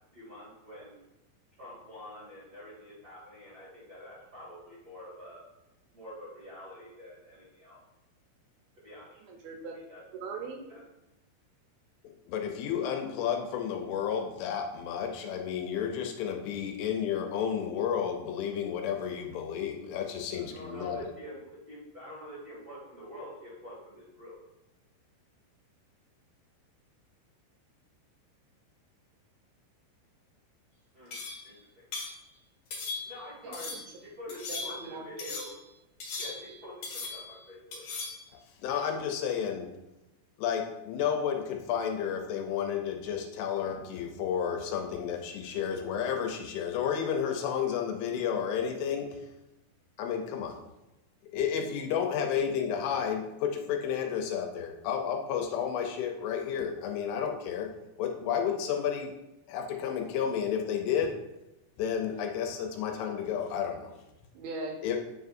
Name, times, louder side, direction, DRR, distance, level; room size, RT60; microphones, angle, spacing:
voice 1, 0.1-1.0 1.6-5.4 5.9-7.8 8.8-9.2 9.7-10.0 10.7-10.8 20.5-24.3 30.9-31.2 31.4-31.6 33.0-33.7 34.0-35.5 36.2-37.8, left 1 dB, 45° right, -8 dB, 1.2 m, -46 dB
voice 2, 9.3-9.7 10.2-10.6 33.4-33.8 34.5-35.4 64.3-64.9, right 3 dB, 80° right, 1 dB, 2.8 m, -40 dB
voice 3, 12.3-21.1 38.6-39.7 40.4-49.2 50.0-50.6 51.3-57.7 58.0-59.1 59.5-61.2 61.8-63.9 64.8-65.0, left 8 dB, 80° left, 3 dB, 2.9 m, -31 dB
sound 1, 31.1-31.5 31.9-32.2 32.7-33.2 33.5-33.9 34.3-34.9 35.2-35.6 36.0-36.6 36.8-37.4 37.7-38.2, left 4 dB, 60° left, 2.0 m, -38 dB
9.3 x 5.4 x 2.5 m, 0.94 s
omnidirectional pair, 5.7 m